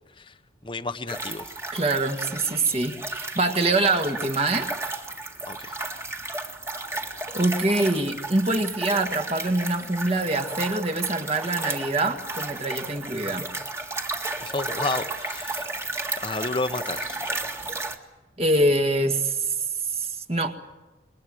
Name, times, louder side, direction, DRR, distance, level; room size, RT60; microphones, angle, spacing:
voice 1, 0.6-1.5 5.5-5.8 14.4-17.2, left 3 dB, 25° left, 1.0 m, -32 dB
sound 1, 1.1-17.9, right 2 dB, 15° right, 1.9 m, -33 dB
voice 2, 1.7-4.7 7.3-13.5 18.4-19.5 19.9-20.5, right 2 dB, 35° right, 2.0 m, -24 dB
27.5 x 22.0 x 7.8 m
head